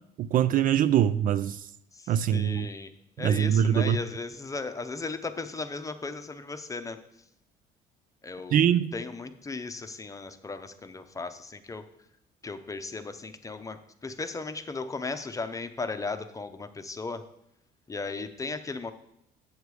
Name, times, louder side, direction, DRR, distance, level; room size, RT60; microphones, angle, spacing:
voice 1, 0.2-1.6 2.1-2.7 3.2-4.0 8.5-9.0, right 10 dB, 55° right, 14 dB, 0.4 m, -23 dB
voice 2, 1.9-2.9 3.2-7.0 8.2-8.6 8.9-11.9 12.4-17.2 17.9-18.9, left 3 dB, 20° left, 9 dB, 0.7 m, -36 dB
8.1 x 6.7 x 4.8 m, 0.77 s
cardioid pair, 110°, 17 cm